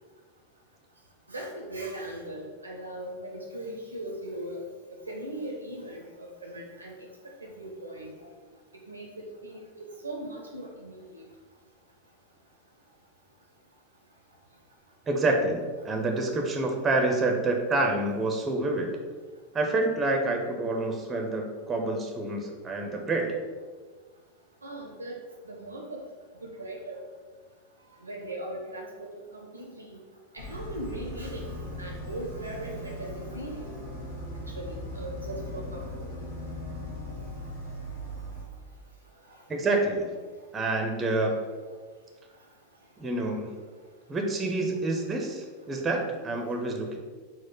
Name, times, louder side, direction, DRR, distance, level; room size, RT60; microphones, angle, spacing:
voice 1, 1.3-4.6 5.1-7.0 7.4-8.1 8.9-11.2 24.6-25.2 25.4-26.0 26.4-27.0 28.0-30.0 30.3-33.7 34.5-36.1, right 1 dB, 80° right, 0 dB, 0.5 m, -39 dB
voice 2, 15.1-18.9 19.5-23.4 39.5-40.1 40.5-41.4 43.0-43.5 44.1-47.0, right 2 dB, 15° right, 2 dB, 0.5 m, -27 dB
sound 1, 30.4-38.4, equal, 60° left, 1.1 m, -38 dB
4.2 x 2.1 x 4.4 m, 1.5 s
figure-of-eight pair, 90°, 0 cm